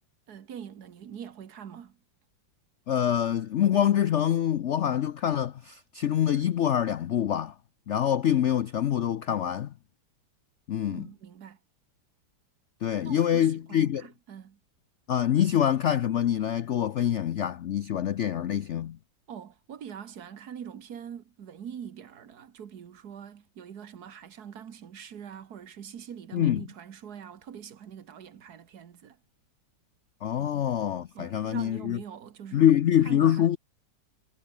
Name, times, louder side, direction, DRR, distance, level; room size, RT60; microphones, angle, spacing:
voice 1, 0.3-2.0 10.9-11.6 13.0-14.6 19.3-29.2 30.4-30.6 31.1-32.7 33.0-33.6, right 8 dB, 60° right, 1.7 m, -43 dB
voice 2, 2.9-7.5 7.9-9.7 10.7-11.0 12.8-14.0 15.1-19.0 26.3-26.6 30.2-32.0 32.5-33.6, left 10 dB, 85° left, 0.6 m, -25 dB
omnidirectional pair, 2.0 m